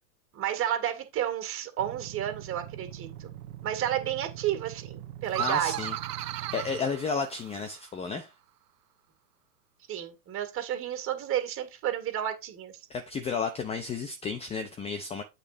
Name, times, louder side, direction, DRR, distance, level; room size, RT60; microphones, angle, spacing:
voice 1, 0.3-3.3 3.6-5.7 9.9-12.8, right 11 dB, 25° right, 2.2 m, -31 dB
sound 1, 1.8-6.8, right 11 dB, 55° right, 1.5 m, -43 dB
sound 2, 5.3-7.8, right 13 dB, 75° right, 0.6 m, -35 dB
voice 2, 5.4-8.3 12.9-15.2, left 5 dB, 15° left, 0.7 m, -33 dB
8.5 x 4.0 x 5.1 m
hypercardioid pair, 115°, 48 cm